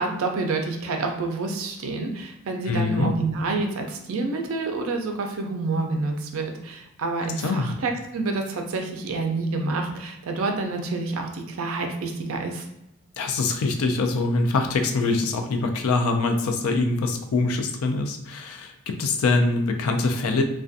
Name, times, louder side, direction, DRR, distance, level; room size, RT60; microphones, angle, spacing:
voice 1, 0.0-12.7, right 3 dB, 65° right, 3 dB, 0.4 m, -28 dB
voice 2, 2.7-3.1 7.4-7.7 13.2-20.4, left 3 dB, 70° left, 5 dB, 0.4 m, -24 dB
2.4 x 2.2 x 2.5 m, 0.84 s
head